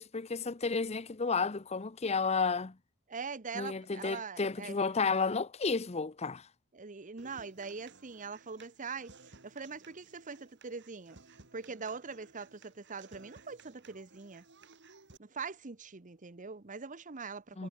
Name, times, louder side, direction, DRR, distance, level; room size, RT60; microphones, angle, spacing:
voice 1, 0.0-2.7 3.5-6.5 17.6-17.7, left 4 dB, 30° left, 0.7 m, -32 dB
voice 2, 3.1-4.8 6.7-9.1 9.4-11.2 11.5-14.4 15.2-17.7, right 5 dB, 35° right, 0.9 m, -42 dB
Human voice / Acoustic guitar, 7.2-15.2, right 3 dB, 50° right, 3.3 m, -58 dB
head